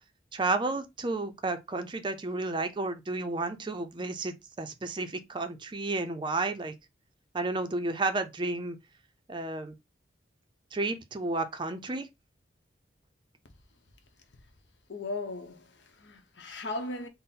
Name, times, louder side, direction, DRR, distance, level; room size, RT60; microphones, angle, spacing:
voice 1, 0.3-6.7 7.3-8.8 9.3-9.7 10.7-12.1, right 2 dB, 25° right, 0.5 m, -32 dB
voice 2, 14.9-17.1, left 2 dB, 75° left, 0.8 m, -37 dB
3.8 x 2.1 x 4.0 m
head